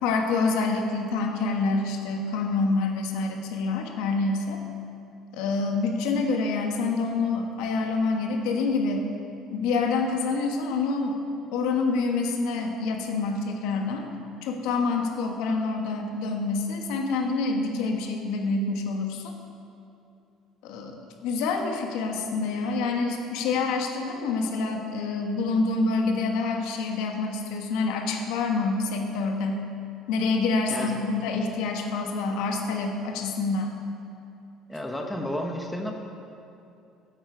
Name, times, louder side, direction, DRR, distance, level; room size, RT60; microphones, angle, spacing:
voice 1, 0.0-4.6 5.3-9.1 9.5-11.2 11.5-14.0 14.4-19.4 20.6-29.7 30.1-33.8, left 3 dB, 85° left, 3 dB, 1.4 m, -27 dB
voice 2, 34.7-35.9, equal, 5° left, 2 dB, 0.9 m, -31 dB
12.5 x 9.0 x 4.7 m, 2.7 s
cardioid pair, 155°, 0 cm